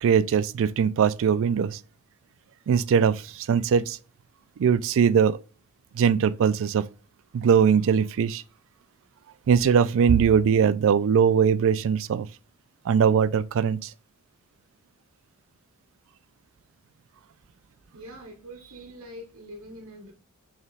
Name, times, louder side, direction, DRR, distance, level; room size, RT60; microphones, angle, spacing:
voice 1, 0.0-1.8 2.7-4.0 4.6-5.4 5.9-6.8 7.3-8.4 9.5-12.3 12.9-13.9, right 7 dB, 65° right, 0.3 m, -21 dB
voice 2, 17.9-20.1, equal, 90° right, 1.3 m, -44 dB
6.4 x 3.6 x 2.3 m
head